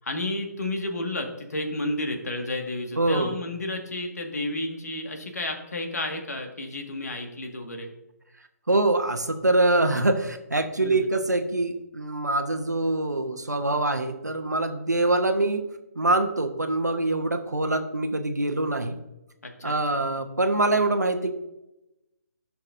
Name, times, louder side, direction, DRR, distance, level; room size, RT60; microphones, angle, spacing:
voice 1, 0.0-7.9 10.8-11.1 19.4-20.0, left 2 dB, 65° left, 4 dB, 1.7 m, -32 dB
voice 2, 3.0-3.3 8.7-15.7 15.9-19.0 19.6-21.3, right 2 dB, 90° right, 6 dB, 1.0 m, -24 dB
14.5 x 5.9 x 2.6 m, 0.92 s
figure-of-eight pair, 140°, 9 cm